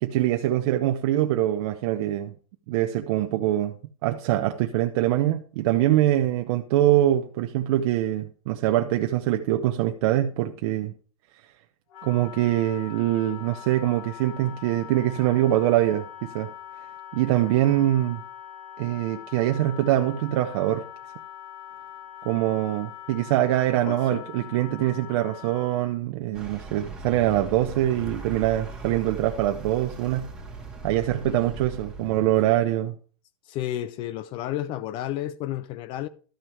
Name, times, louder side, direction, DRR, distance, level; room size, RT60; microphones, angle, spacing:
voice 1, 0.0-2.3 2.7-10.9 12.0-16.5 17.1-18.2 18.8-20.9 22.2-30.3 30.8-32.9, right 13 dB, 45° right, 0.8 m, -24 dB
Wind instrument woodwind instrument, 11.9-26.0, left 11 dB, 65° left, 2.2 m, -42 dB
voice 2, 23.9-24.3 31.2-31.4 33.4-36.1, left 12 dB, 30° left, 0.4 m, -32 dB
Vehicle, 26.3-32.7, right 4 dB, 5° right, 2.3 m, -39 dB
12.5 x 6.1 x 4.8 m
supercardioid pair, 150°, 18 cm